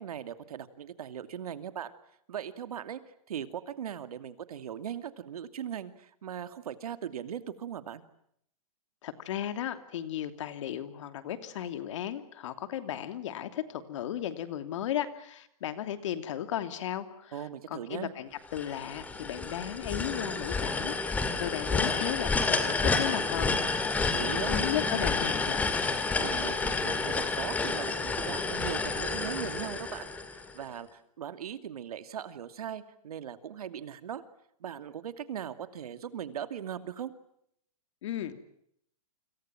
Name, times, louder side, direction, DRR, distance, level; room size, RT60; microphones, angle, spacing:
voice 1, 0.0-1.9 2.3-3.0 3.3-8.0 17.3-18.1 24.1-24.6 26.2-34.2 34.6-37.1, right 9 dB, 75° right, 10 dB, 2.6 m, -39 dB
voice 2, 9.0-23.6 24.2-25.6 38.0-38.4, left 11 dB, 50° left, 10 dB, 2.9 m, -35 dB
sound 1, 18.5-30.6, left 4 dB, 10° left, 2.3 m, -30 dB
29.5 x 26.5 x 6.0 m, 0.72 s
hypercardioid pair, 165°, 19 cm